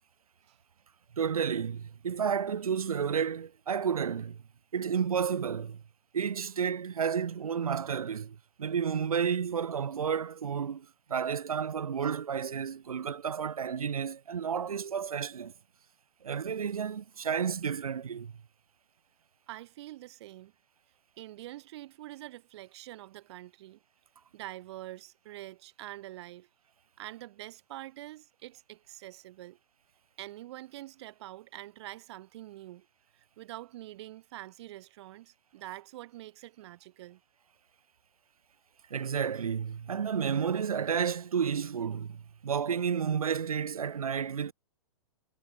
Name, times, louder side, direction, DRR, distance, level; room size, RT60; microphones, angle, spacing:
voice 1, 1.2-4.4 4.7-5.8 6.1-15.5 16.2-18.3 38.9-44.5, right 7 dB, 90° right, 2.0 m, -31 dB
voice 2, 19.5-20.5 21.2-23.8 24.3-26.5 27.0-29.6 30.2-32.9 33.1-37.2, right 16 dB, 50° right, 2.2 m, -45 dB
hypercardioid pair, 140°, 18 cm